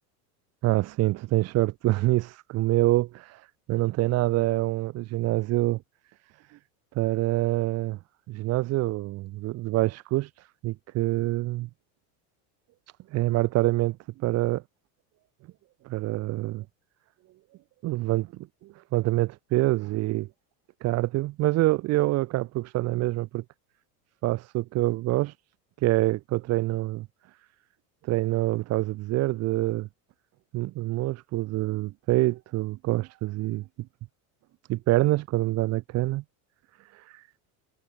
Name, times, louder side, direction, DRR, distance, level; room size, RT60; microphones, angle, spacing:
voice 1, 0.6-3.3 3.7-5.8 6.9-8.0 8.3-10.3 10.6-11.7 13.1-14.6 15.8-16.6 17.8-20.3 20.8-23.4 24.2-25.3 25.8-27.1 28.1-29.9 30.5-33.6 34.7-36.2, right 18 dB, 35° right, 1.3 m, -26 dB
supercardioid pair, 160°, 45 cm